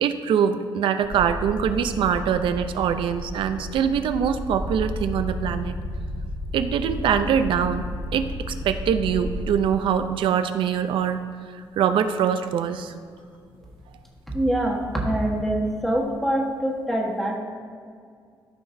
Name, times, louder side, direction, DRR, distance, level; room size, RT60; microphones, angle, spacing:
voice 1, 0.0-5.8 6.5-7.9 8.1-11.2 11.5-12.9, right 8 dB, 70° right, 9 dB, 0.6 m, -23 dB
sound 1, 1.0-9.8 10.9-11.0 13.2-13.3 13.5-16.1, equal, 70° left, 1.4 m, -33 dB
voice 2, 14.3-17.4, right 1 dB, 5° left, -2 dB, 1.4 m, -24 dB
13.5 x 5.9 x 2.7 m, 2.2 s
cardioid pair, 150°, 9 cm